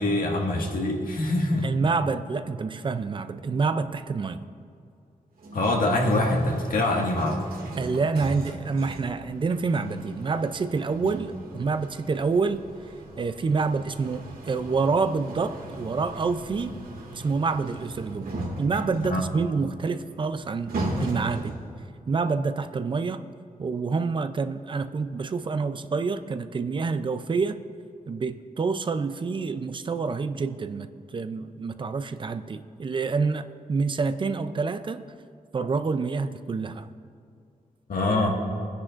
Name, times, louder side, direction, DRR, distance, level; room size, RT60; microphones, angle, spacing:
voice 1, 0.0-1.7 5.5-7.4 11.0-11.1 19.0-19.2 37.9-38.3, left 2 dB, 75° left, 0 dB, 1.7 m, -24 dB
voice 2, 1.6-4.4 7.8-12.6 13.2-16.8 17.1-20.7 21.0-21.5 22.1-23.2 23.6-27.6 28.1-35.0 35.5-36.9, right 4 dB, 35° right, 11 dB, 0.4 m, -27 dB
sound 1, 5.4-21.8, right 1 dB, 85° right, 2.0 m, -38 dB
24.5 x 10.0 x 2.5 m, 2.4 s
wide cardioid pair, 175°, 15 cm